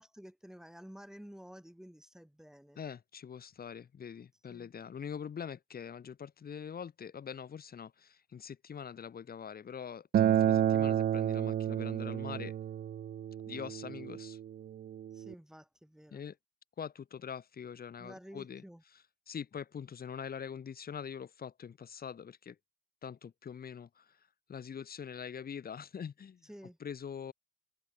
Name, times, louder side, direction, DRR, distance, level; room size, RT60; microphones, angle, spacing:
voice 1, 0.0-2.8 4.5-4.7 15.1-16.2 18.0-18.8 26.4-26.8, equal, 5° right, 6.0 m, -52 dB
voice 2, 2.8-12.5 13.5-14.4 16.1-16.4 16.8-18.6 19.3-22.6 23.0-24.2 24.5-26.5 26.8-27.3, left 7 dB, 50° left, 4.2 m, -44 dB
Acoustic guitar, 10.1-15.3, right 10 dB, 50° right, 0.6 m, -31 dB
cardioid pair, 90°, 20 cm